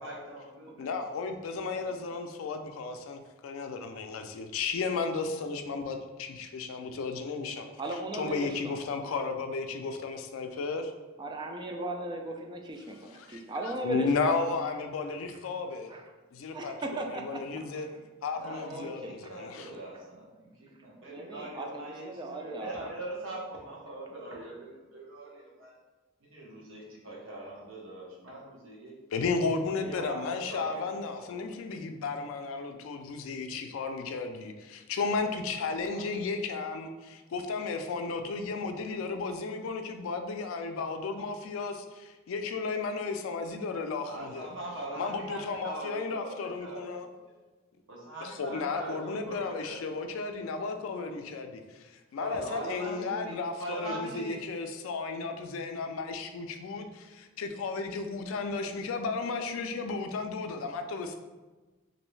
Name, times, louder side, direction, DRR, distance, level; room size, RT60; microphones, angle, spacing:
voice 1, 0.0-1.0 1.7-2.1 18.4-25.7 26.2-28.9 29.7-30.8 31.1-31.4 35.9-36.1 44.1-47.0 47.9-49.8 52.1-54.4, right 1 dB, 75° right, -3 dB, 0.9 m, -42 dB
voice 2, 0.8-7.7 7.9-10.9 13.2-15.9 16.3-17.9 18.2-19.7 29.1-44.5 45.0-47.1 48.2-61.1, left 4 dB, 85° left, 6 dB, 0.3 m, -34 dB
voice 3, 7.8-8.6 11.2-14.1 15.9-16.0 16.5-17.9 18.6-19.3 21.1-22.9, right 2 dB, 20° right, 2 dB, 0.3 m, -37 dB
3.0 x 2.6 x 3.1 m, 1.2 s
head